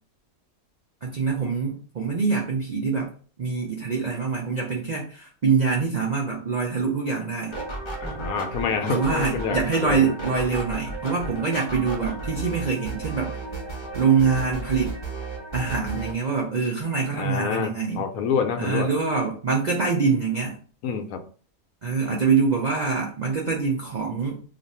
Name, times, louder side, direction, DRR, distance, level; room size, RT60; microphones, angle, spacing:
voice 1, 1.0-3.1 3.4-7.6 8.9-13.3 13.9-14.9 15.5-18.0 18.6-20.6 21.8-24.4, right 5 dB, 60° right, -2 dB, 0.4 m, -24 dB
sound 1, 7.5-16.1, right 2 dB, 25° left, 0.7 m, -34 dB
voice 2, 8.0-10.1 17.2-18.9 20.8-21.2, left 6 dB, 80° left, 6 dB, 1.1 m, -27 dB
2.6 x 2.4 x 4.1 m, 0.41 s
omnidirectional pair, 1.5 m